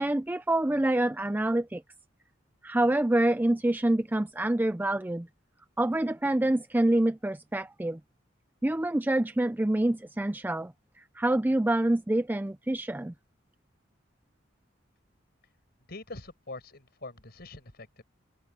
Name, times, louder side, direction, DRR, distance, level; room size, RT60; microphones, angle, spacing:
voice 1, 0.0-1.8 2.6-5.3 5.8-8.0 8.6-10.7 11.2-13.1, right 1 dB, 10° right, 0.4 m, -26 dB
voice 2, 15.9-18.0, left 2 dB, 55° left, 5.3 m, -44 dB
open air
head